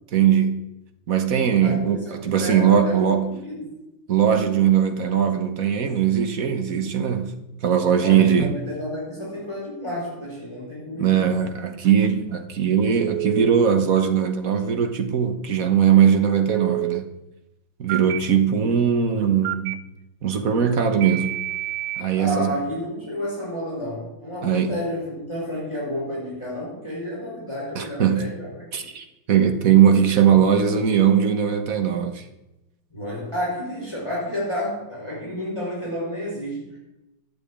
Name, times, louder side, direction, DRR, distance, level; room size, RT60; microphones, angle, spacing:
voice 1, 0.1-0.7 1.1-3.3 4.1-7.4 7.6-8.6 11.0-17.0 17.8-19.8 20.2-21.3 22.0-22.5 24.4-24.7 27.7-28.3 28.7-32.2, right 8 dB, 50° right, 7 dB, 1.4 m, -20 dB
voice 2, 1.6-3.7 7.9-11.3 22.1-28.9 32.9-36.8, left 1 dB, 15° left, -5 dB, 5.5 m, -31 dB
Telephone, 13.0-13.5 16.5-17.0 17.9-18.2 19.4-19.8 21.0-22.0, right 18 dB, 80° right, 1.5 m, -28 dB
11.5 x 8.4 x 8.5 m, 0.95 s
omnidirectional pair, 2.2 m